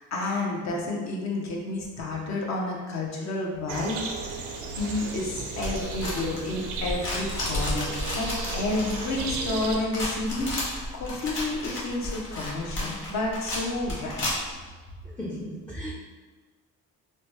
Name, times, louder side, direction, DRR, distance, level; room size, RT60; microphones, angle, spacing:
voice 1, 0.0-10.5 10.9-14.3, left 2 dB, 65° left, -1 dB, 0.7 m, -30 dB
sound 1, 3.7-9.8, right 3 dB, 90° right, 0.5 m, -35 dB
sound 2, 5.6-14.6, left 1 dB, 40° left, 1.2 m, -32 dB
voice 2, 15.0-15.9, equal, 5° left, -4 dB, 0.3 m, -36 dB
3.0 x 2.2 x 3.0 m, 1.3 s
cardioid pair, 90°, 30 cm